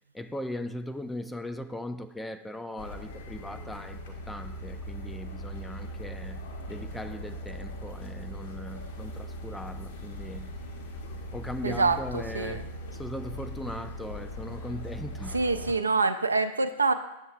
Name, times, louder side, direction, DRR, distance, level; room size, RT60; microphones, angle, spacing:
voice 1, 0.1-10.5 11.3-12.7 12.9-15.5, left 1 dB, 5° left, 10 dB, 0.3 m, -39 dB
sound 1, 2.8-15.7, equal, 55° left, 0.9 m, -40 dB
voice 2, 11.6-12.6 15.3-16.9, right 3 dB, 80° right, 10 dB, 0.4 m, -26 dB
8.0 x 6.9 x 2.4 m, 0.96 s
figure-of-eight pair, 90°, 0 cm